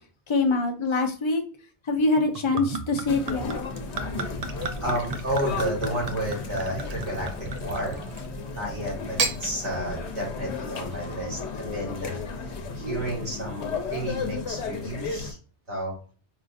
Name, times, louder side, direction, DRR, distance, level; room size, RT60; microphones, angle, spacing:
voice 1, 0.3-1.4 1.9-3.6 4.6-4.8, left 3 dB, 40° left, 4 dB, 0.4 m, -24 dB
Gurgling / Chink clink / Liquid, 2.2-8.3 9.0-9.4, right 4 dB, 65° right, 0.4 m, -33 dB
sound 1, 3.1-15.3, left 4 dB, 80° left, 0.9 m, -34 dB
voice 2, 4.8-8.0 8.5-12.2 12.8-15.4 15.7-15.9, right 1 dB, 85° right, -4 dB, 2.1 m, -31 dB
4.6 x 2.5 x 2.5 m, 0.39 s
omnidirectional pair, 1.1 m